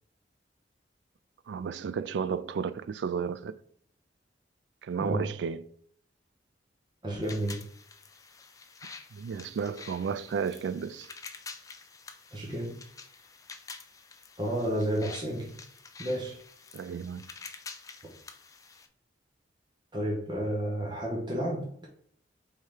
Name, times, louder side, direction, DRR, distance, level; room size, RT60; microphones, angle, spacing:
voice 1, 1.5-3.5 4.8-5.6 9.1-11.1 16.7-17.2, right 6 dB, 75° right, 0.3 m, -33 dB
voice 2, 5.0-5.3 7.0-7.6 12.3-12.8 14.4-15.6 16.0-16.4 18.0-18.1 19.9-21.9, right 1 dB, 25° right, 0.8 m, -31 dB
sound 1, 7.2-18.9, left 4 dB, 20° left, 0.4 m, -48 dB
3.5 x 3.3 x 4.4 m
head